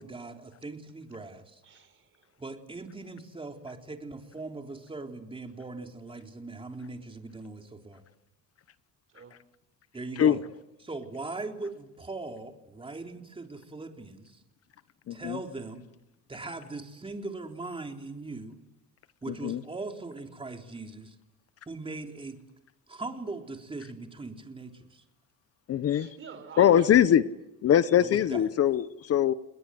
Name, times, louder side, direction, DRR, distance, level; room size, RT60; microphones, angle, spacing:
voice 1, 0.0-1.6 2.4-8.0 9.9-10.4 10.8-14.4 15.1-15.8 16.3-18.6 19.2-21.2 21.7-22.4 22.9-25.0 28.0-28.4, right 3 dB, 15° right, 3 dB, 3.8 m, -40 dB
voice 2, 1.6-2.3 9.1-9.4 25.9-27.4 27.9-28.1, right 6 dB, 40° right, 12 dB, 4.5 m, -48 dB
voice 3, 15.1-15.4 19.4-19.6 25.7-26.1 26.6-27.2 27.6-29.3, left 10 dB, 45° left, 14 dB, 1.0 m, -22 dB
29.5 x 21.0 x 7.8 m, 0.93 s
cardioid pair, 115°, 32 cm